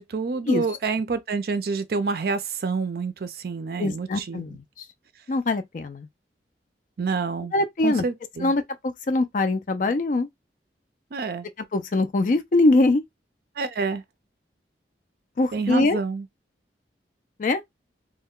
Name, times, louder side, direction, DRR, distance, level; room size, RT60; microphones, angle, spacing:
voice 1, 0.0-4.5 7.0-7.5 7.8-8.5 11.1-11.5 13.6-14.0 15.5-16.3, right 4 dB, 55° right, 0.4 m, -28 dB
voice 2, 3.8-4.6 5.3-6.1 7.5-8.0 8.4-10.3 11.7-13.0 15.4-16.0 17.4-17.6, left 2 dB, 45° left, 0.4 m, -22 dB
2.2 x 2.1 x 3.6 m
head